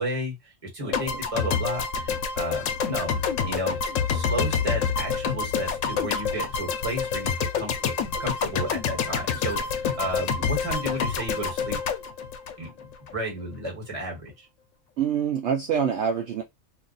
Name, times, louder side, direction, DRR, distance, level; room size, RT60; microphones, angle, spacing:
voice 1, 0.0-3.8 4.1-11.8 12.6-12.7 13.1-14.5, right 1 dB, 30° right, 1.3 m, -33 dB
voice 2, 0.8-1.2 10.4-10.5 15.0-16.4, right 7 dB, 70° right, 0.8 m, -26 dB
sound 1, 0.9-13.1, left 6 dB, 90° left, 1.0 m, -27 dB
2.6 x 2.3 x 3.8 m
omnidirectional pair, 1.3 m